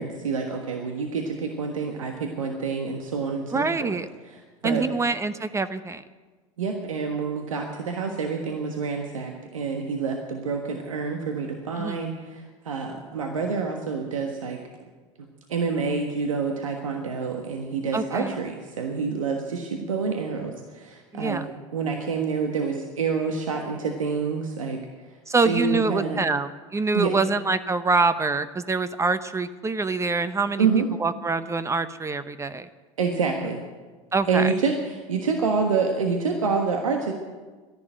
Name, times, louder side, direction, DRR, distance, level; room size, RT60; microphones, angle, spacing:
voice 1, 0.0-4.0 4.3-4.9 6.6-14.6 15.5-21.4 21.7-24.8 25.4-26.2 26.9-27.1 30.6-30.9 33.0-33.6 34.3-37.1, right 5 dB, 90° right, 3 dB, 1.5 m, -27 dB
voice 2, 3.5-4.1 4.6-6.0 11.8-12.0 17.9-18.4 21.1-21.4 25.3-30.7 31.0-32.7 34.1-34.5, right 4 dB, 15° right, 13 dB, 0.8 m, -25 dB
13.0 x 11.0 x 9.1 m, 1.3 s
hypercardioid pair, 80°, 17 cm